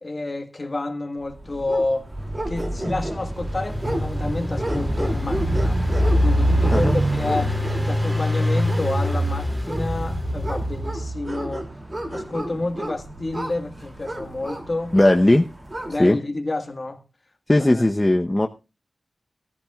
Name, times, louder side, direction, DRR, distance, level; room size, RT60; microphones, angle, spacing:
voice 1, 0.0-2.1 2.5-5.8 6.2-7.6 7.8-11.7 12.1-15.0 15.9-17.0 17.6-17.8, left 2 dB, 40° left, 1.6 m, -29 dB
sound 1, 1.4-15.9, equal, 30° right, 2.6 m, -27 dB
Engine, 3.1-11.1, equal, 10° right, 2.5 m, -27 dB
voice 2, 14.9-15.5 16.0-16.2 17.5-18.5, left 1 dB, 25° left, 0.8 m, -17 dB
15.0 x 13.5 x 2.3 m
wide cardioid pair, 70°, 0 cm